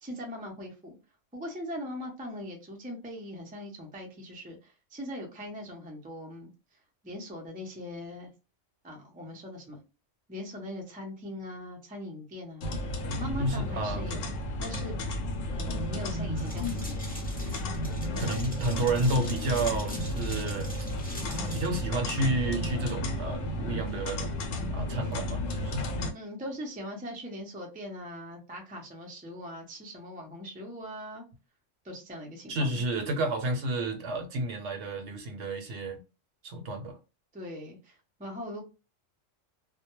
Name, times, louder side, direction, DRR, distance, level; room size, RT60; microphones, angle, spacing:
voice 1, 0.0-1.0 1.3-6.5 7.0-8.3 8.8-9.8 10.3-12.7 13.2-14.2 14.6-15.0 15.5-17.0 26.1-31.2 31.8-32.8 37.3-38.6, left 1 dB, 15° right, 0.3 m, -41 dB
sound 1, 12.6-26.1, left 1 dB, 90° left, 1.0 m, -33 dB
voice 2, 13.4-14.1 18.2-20.8 21.3-24.3 24.7-25.8 32.5-36.0 36.4-37.0, right 2 dB, 70° right, 0.9 m, -31 dB
sound 2, 16.4-21.7, equal, 10° left, 0.8 m, -44 dB
2.2 x 2.1 x 2.9 m
omnidirectional pair, 1.3 m